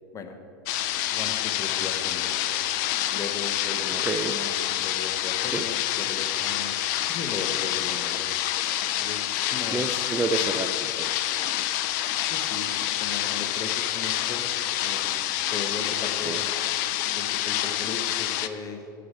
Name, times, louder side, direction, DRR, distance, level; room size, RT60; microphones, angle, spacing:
sound 1, 0.7-18.5, left 13 dB, 50° left, 0.5 m, -27 dB
voice 1, 1.1-2.4 3.1-6.7 7.1-8.3 9.0-9.2 9.5-10.0 12.3-12.7 13.0-14.5 14.8-16.5 17.1-18.8, left 4 dB, 30° left, 5 dB, 1.3 m, -37 dB
voice 2, 3.9-4.3 5.5-5.7 9.7-11.1 16.2-16.4, right 4 dB, 15° right, 7 dB, 0.5 m, -29 dB
11.5 x 4.9 x 8.2 m, 2.5 s
hypercardioid pair, 90°, 12 cm